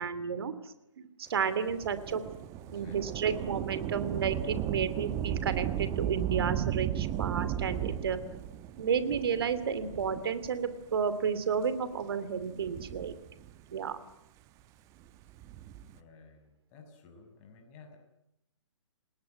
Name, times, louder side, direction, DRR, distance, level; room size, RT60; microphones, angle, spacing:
voice 1, 0.0-2.2 2.7-8.2 8.8-13.1 13.7-14.0, right 6 dB, 50° right, 13 dB, 2.8 m, -32 dB
Thunder / Rain, 1.7-10.6 11.4-11.5 12.4-13.7 15.2-16.0, right 11 dB, 20° right, 1.1 m, -35 dB
voice 2, 2.7-3.0 15.9-18.0, left 4 dB, 30° left, 4 dB, 6.6 m, -54 dB
29.5 x 19.5 x 9.5 m, 0.83 s
figure-of-eight pair, 130°, 16 cm